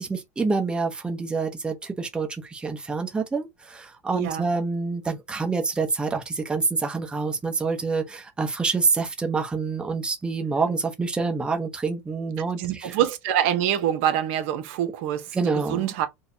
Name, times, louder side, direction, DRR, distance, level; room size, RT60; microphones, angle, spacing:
voice 1, 0.0-12.9 15.3-15.9, right 4 dB, 15° right, 0.8 m, -27 dB
voice 2, 4.1-4.5 12.6-16.1, right 10 dB, 70° right, 0.8 m, -25 dB
4.6 x 2.2 x 2.7 m
supercardioid pair, 120°, 7 cm